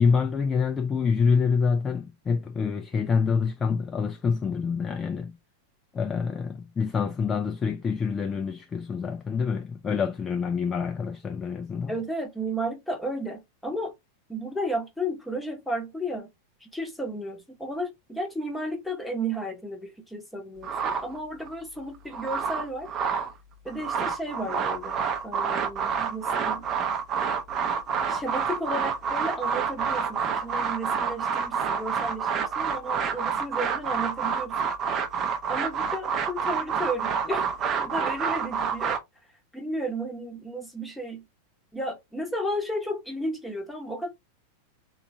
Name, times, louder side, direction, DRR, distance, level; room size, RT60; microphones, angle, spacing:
voice 1, 0.0-5.4 5.9-11.9, left 5 dB, 20° left, 0.4 m, -26 dB
voice 2, 11.9-13.9 14.3-16.3 16.6-22.9 23.6-25.0 25.2-26.7 28.1-34.7 35.5-39.0 39.5-41.2 41.7-44.1, right 1 dB, 5° left, 0.9 m, -33 dB
sound 1, 20.6-21.5 21.9-23.3 23.7-39.0, right 6 dB, 30° right, 0.6 m, -28 dB
3.7 x 2.4 x 2.9 m
figure-of-eight pair, 90°, 0 cm